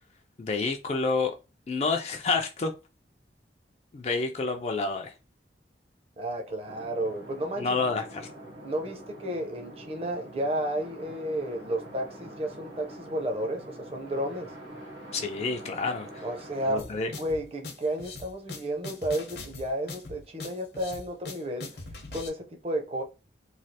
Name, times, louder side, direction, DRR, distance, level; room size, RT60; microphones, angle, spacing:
voice 1, 0.4-1.3 1.7-2.7 3.9-5.1 7.6-8.3 15.1-16.2 16.7-17.1, left 4 dB, 35° left, 0.3 m, -29 dB
voice 2, 6.2-7.7 8.6-14.5 16.2-16.9 17.2-21.8 22.1-23.0, right 1 dB, 35° right, 0.6 m, -32 dB
sound 1, 6.7-17.2, equal, 90° right, 0.9 m, -45 dB
sound 2, 16.8-22.3, left 3 dB, 65° left, 0.7 m, -41 dB
3.2 x 2.3 x 2.7 m
head